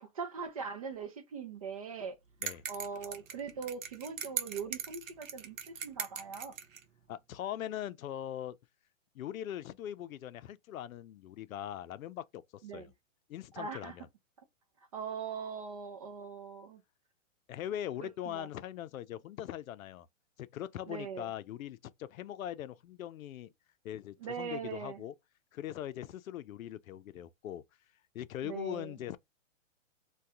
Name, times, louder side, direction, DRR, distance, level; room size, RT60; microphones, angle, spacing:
voice 1, 0.0-2.2 2.7-6.5 12.6-12.9 13.6-13.9 14.9-16.8 18.0-18.5 20.9-21.3 24.2-25.0 28.4-28.9, right 6 dB, 30° right, 0.4 m, -41 dB
sound 1, 2.4-6.8, right 8 dB, 70° right, 0.8 m, -40 dB
voice 2, 7.1-8.6 9.1-12.9 13.3-14.1 17.5-20.1 20.4-23.5 23.8-25.1 25.5-27.6 28.1-29.2, left 11 dB, 90° left, 0.5 m, -41 dB
2.7 x 2.3 x 3.4 m
hypercardioid pair, 145°, 40 cm